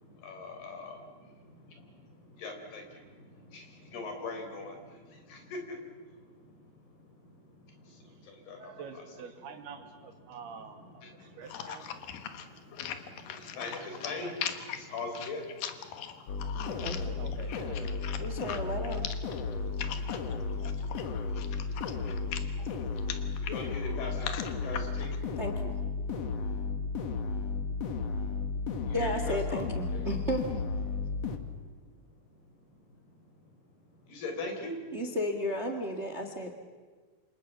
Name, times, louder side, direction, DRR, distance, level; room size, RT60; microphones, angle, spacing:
voice 1, 0.2-0.9 2.4-2.8 3.9-4.7 5.3-5.4 8.5-8.6 13.6-14.3 14.9-15.4 23.5-24.1 24.6-25.1 28.9-29.6 29.9-30.0 34.1-34.8, left 3 dB, 85° left, 4 dB, 6.1 m, -38 dB
voice 2, 8.5-12.0 13.7-14.1 17.2-18.1, right 6 dB, 90° right, 5 dB, 4.2 m, -47 dB
sound 1, 11.4-25.2, left 9 dB, 70° left, 2.9 m, -41 dB
sound 2, 16.3-31.4, left 4 dB, 55° left, 2.3 m, -34 dB
voice 3, 16.5-17.2 18.2-19.1 25.4-25.8 28.9-30.4 34.9-36.6, equal, 35° right, 6 dB, 1.0 m, -34 dB
28.5 x 26.5 x 7.3 m, 1.5 s
omnidirectional pair, 4.4 m